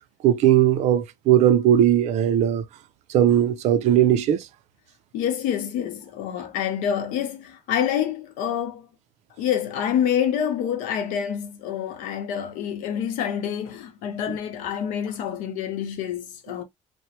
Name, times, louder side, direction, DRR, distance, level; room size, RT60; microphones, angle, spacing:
voice 1, 0.2-2.6 3.1-4.4, right 11 dB, 60° right, 0.4 m, -18 dB
voice 2, 5.1-8.9 9.4-16.6, left 9 dB, 85° left, 0.8 m, -27 dB
3.0 x 2.0 x 2.7 m
cardioid pair, 150°, 13 cm